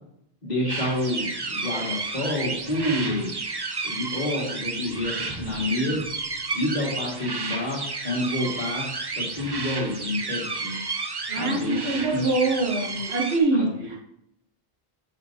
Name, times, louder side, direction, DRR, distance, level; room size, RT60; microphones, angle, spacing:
voice 1, 0.4-3.4 3.8-6.1 6.5-8.9 9.2-10.8 11.3-11.8 12.1-12.2 13.5-13.9, left 1 dB, 45° left, -4 dB, 2.2 m, -28 dB
sound 1, 0.7-13.4, right 3 dB, 30° right, 0.6 m, -32 dB
voice 2, 11.3-14.0, right 2 dB, 90° right, 2 dB, 1.5 m, -24 dB
8.7 x 5.7 x 2.8 m, 0.75 s
omnidirectional pair, 1.0 m